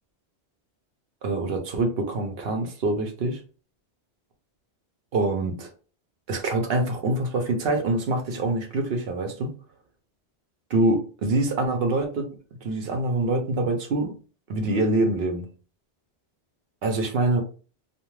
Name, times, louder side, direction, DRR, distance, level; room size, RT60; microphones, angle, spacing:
voice 1, 1.2-3.4 5.1-5.7 6.3-9.5 10.7-12.3 12.6-14.1 14.5-15.5 16.8-17.4, right 2 dB, 70° right, 5 dB, 0.9 m, -25 dB
2.4 x 2.3 x 3.0 m, 0.37 s
omnidirectional pair, 1.1 m